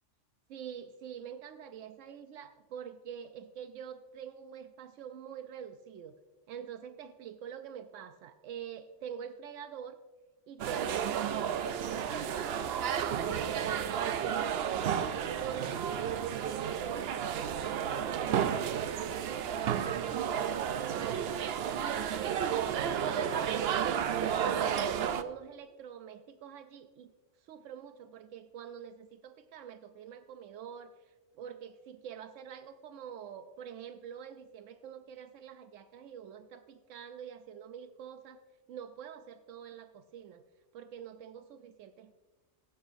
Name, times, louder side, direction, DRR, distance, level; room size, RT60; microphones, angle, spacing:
voice 1, 0.5-6.1 6.5-10.0 10.5-14.9 15.3-27.1 27.4-38.4 38.7-40.4 40.7-42.2, right 8 dB, 85° right, 9 dB, 0.9 m, -46 dB
sound 1, 10.6-25.2, right 8 dB, 65° right, 0.7 m, -32 dB
23.5 x 8.1 x 2.5 m, 1.3 s
omnidirectional pair, 1.3 m